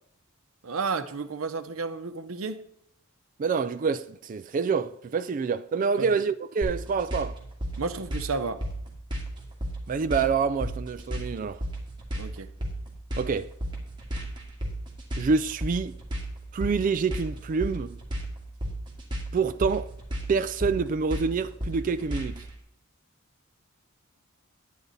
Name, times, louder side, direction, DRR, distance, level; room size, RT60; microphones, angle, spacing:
voice 1, 0.6-2.6 6.0-6.1 7.8-8.6 12.2-12.5, right 4 dB, 80° right, 0.7 m, -32 dB
voice 2, 3.4-7.4 9.9-11.6 13.2-13.5 15.2-16.0 16.5-18.0 19.3-19.9 20.3-22.5, right 5 dB, 40° right, 0.3 m, -27 dB
sound 1, 6.6-22.5, right 1 dB, 25° right, 2.1 m, -33 dB
10.0 x 9.3 x 4.0 m
head